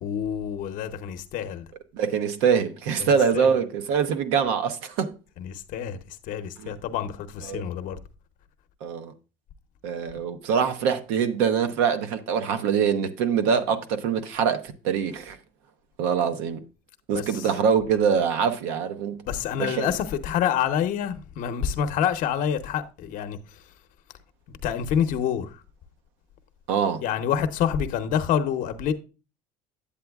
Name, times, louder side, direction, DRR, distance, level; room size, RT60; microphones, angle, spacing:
voice 1, 0.0-1.7 3.0-3.5 5.4-6.0 6.3-8.0 17.1-17.2 19.3-23.4 24.6-25.6 27.0-28.9, left 9 dB, 55° left, 0.8 m, -27 dB
voice 2, 1.9-5.1 6.6-6.7 7.5-7.6 8.8-9.1 9.8-15.4 16.0-16.6 17.1-19.2 19.6-19.9 26.7-27.0, right 7 dB, 80° right, 0.8 m, -24 dB
8.5 x 7.8 x 2.3 m
supercardioid pair, 100°, 16 cm